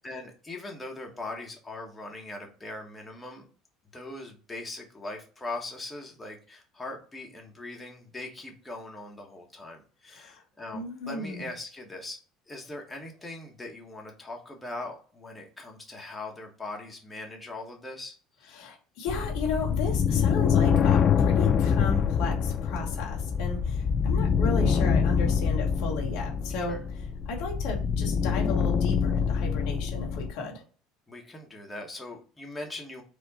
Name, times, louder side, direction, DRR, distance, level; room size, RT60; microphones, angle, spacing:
voice 1, 0.0-3.5 3.9-12.2 12.5-18.1 18.4-18.6 26.7-26.8 31.1-33.0, left 2 dB, 15° left, 0 dB, 1.3 m, -40 dB
voice 2, 10.1-10.4 10.7-11.5 18.5-30.6, left 3 dB, 70° left, 0 dB, 1.2 m, -35 dB
sound 1, 19.1-30.3, left 7 dB, 45° left, 0.4 m, -25 dB
4.4 x 2.4 x 4.1 m, 0.39 s
hypercardioid pair, 70°, 0 cm